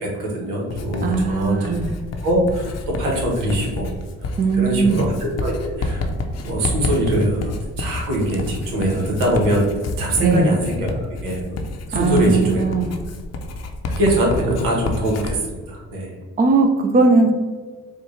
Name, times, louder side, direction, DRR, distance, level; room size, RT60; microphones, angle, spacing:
voice 1, 0.0-1.7 2.2-3.9 4.5-5.5 5.8-6.0 6.4-7.4 7.8-9.6 10.0-11.4 11.9-12.6 13.9-16.1, right 1 dB, 90° right, -2 dB, 1.1 m, -22 dB
Writing, 0.7-15.4, left 2 dB, 55° left, 0.6 m, -29 dB
voice 2, 1.0-1.9 4.4-5.0 10.2-10.5 11.9-12.9 16.4-17.3, right 3 dB, 25° right, 4 dB, 0.5 m, -18 dB
4.4 x 2.3 x 3.1 m, 1.5 s
supercardioid pair, 70°, 32 cm